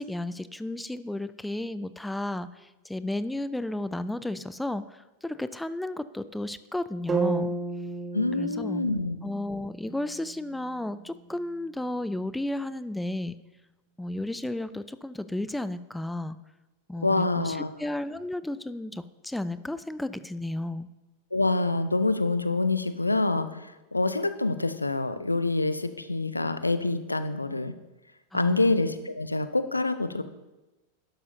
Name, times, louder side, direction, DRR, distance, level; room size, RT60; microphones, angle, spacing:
voice 1, 0.0-7.5 8.4-8.8 9.2-13.4 14.0-16.4 16.9-20.9 28.3-28.7, left 1 dB, 5° left, 14 dB, 0.4 m, -33 dB
sound 1, 7.1-11.2, right 3 dB, 15° right, 1.3 m, -33 dB
voice 2, 8.1-9.2 17.0-17.7 21.3-27.7 28.3-30.2, left 2 dB, 85° left, 12 dB, 0.5 m, -26 dB
12.0 x 11.5 x 2.7 m, 1.1 s
figure-of-eight pair, 90°, 0 cm